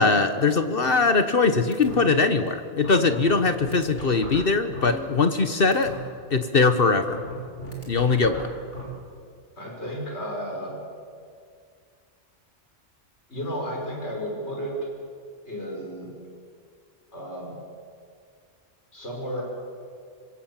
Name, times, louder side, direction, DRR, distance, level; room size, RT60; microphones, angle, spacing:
voice 1, 0.0-5.9 6.3-7.2 7.9-8.5, left 4 dB, 50° left, 9 dB, 1.3 m, -21 dB
sound 1, 0.8-1.4 1.7-2.0 2.5-2.6 2.8-5.4 5.7-6.0 6.8-8.8, left 1 dB, 85° left, 5.1 m, -38 dB
voice 2, 9.6-10.8 13.3-14.7 15.4-16.1 17.1-17.6 18.9-19.4, equal, 70° left, -2 dB, 6.8 m, -33 dB
25.5 x 24.5 x 7.4 m, 2.1 s
omnidirectional pair, 1.2 m